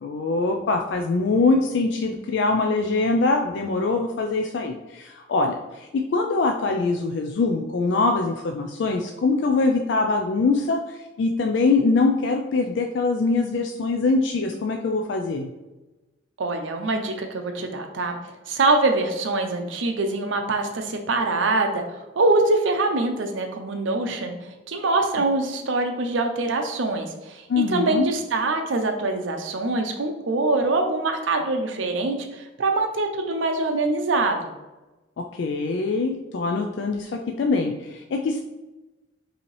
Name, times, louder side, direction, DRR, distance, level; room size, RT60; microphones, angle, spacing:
voice 1, 0.0-15.5 27.5-28.1 35.3-38.4, left 3 dB, 65° left, 3 dB, 0.3 m, -23 dB
voice 2, 16.4-18.2 18.5-24.4 24.7-34.4, right 2 dB, 80° right, 4 dB, 0.6 m, -24 dB
5.0 x 2.8 x 3.2 m, 1.1 s
head